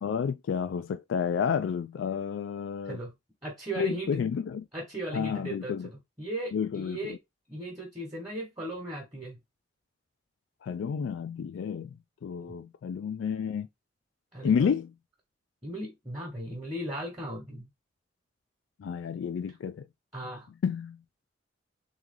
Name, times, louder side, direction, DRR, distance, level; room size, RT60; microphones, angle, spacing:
voice 1, 0.0-3.0 3.8-4.6 5.1-5.9 6.5-7.2 10.6-11.9 12.2-13.7 14.4-14.9 18.8-19.8 20.6-21.0, left 7 dB, 80° left, 0.3 m, -30 dB
voice 2, 3.4-4.1 4.7-7.2 7.5-9.4 14.3-14.7 15.6-17.6 20.1-20.5, right 1 dB, 20° right, 1.2 m, -37 dB
3.6 x 3.1 x 3.6 m
head